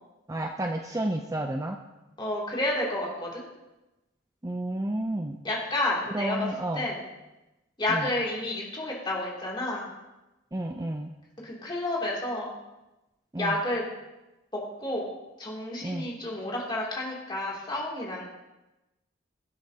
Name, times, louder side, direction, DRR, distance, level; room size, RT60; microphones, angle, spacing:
voice 1, 0.3-1.8 4.4-5.4 6.1-6.9 7.9-8.1 10.5-11.1 13.3-13.6 15.8-16.1, right 1 dB, 15° right, 3 dB, 0.5 m, -31 dB
voice 2, 2.2-3.4 5.4-6.5 6.7-7.0 7.8-9.9 11.4-12.5 13.4-13.9 14.5-15.1 15.4-18.3, left 1 dB, 25° left, -4 dB, 2.8 m, -30 dB
22.5 x 7.9 x 2.8 m, 1.0 s
head